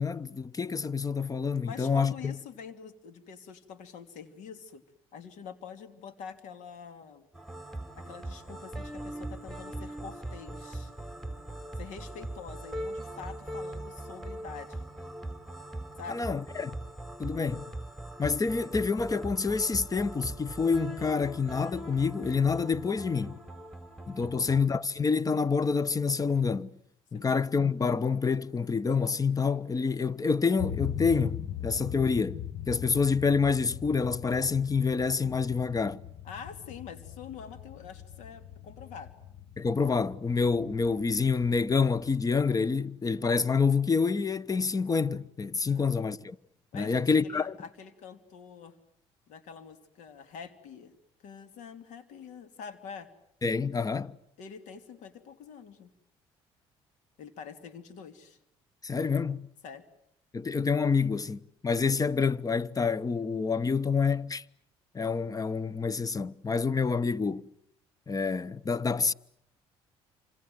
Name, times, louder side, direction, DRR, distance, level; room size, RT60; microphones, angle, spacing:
voice 1, 0.0-2.4 16.1-16.7 17.2-17.7 18.2-23.4 24.1-26.7 27.1-36.0 39.6-46.4 46.7-47.6 53.4-54.2 58.8-59.5 60.3-64.4 64.9-67.5 68.1-69.1, left 5 dB, 30° left, 1.1 m, -27 dB
voice 2, 1.6-4.8 5.1-7.3 7.9-10.9 11.8-14.8 16.0-16.3 24.2-24.6 27.1-27.3 36.2-39.1 45.6-45.9 46.7-48.8 49.3-51.0 51.2-53.1 54.4-55.9 57.2-58.4 59.6-59.8, left 6 dB, 75° left, 3.0 m, -45 dB
sound 1, 7.3-24.6, right 1 dB, ahead, 4.4 m, -41 dB
sound 2, 30.6-42.2, left 10 dB, 55° left, 1.7 m, -40 dB
28.0 x 26.5 x 7.9 m
supercardioid pair, 70°, 13 cm